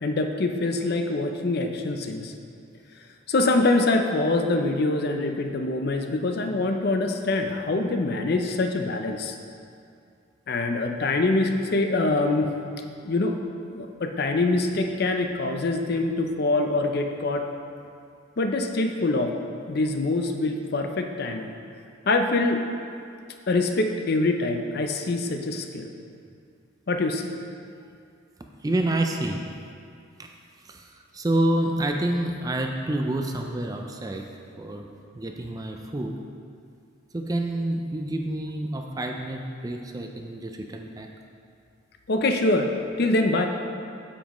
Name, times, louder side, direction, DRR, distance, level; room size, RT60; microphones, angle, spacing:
voice 1, 0.0-2.3 3.3-9.4 10.5-12.5 13.0-13.4 13.7-17.4 18.4-19.3 19.7-21.5 22.1-22.6 23.5-25.9 26.9-27.3 42.1-42.7 43.0-43.5, left 2 dB, 50° left, 5 dB, 0.5 m, -24 dB
voice 2, 28.6-29.4 30.7-30.8 31.1-34.2 34.6-34.9 35.2-36.2 37.1-41.1, right 1 dB, 20° right, 3 dB, 0.4 m, -28 dB
8.6 x 7.3 x 3.1 m, 2.4 s
head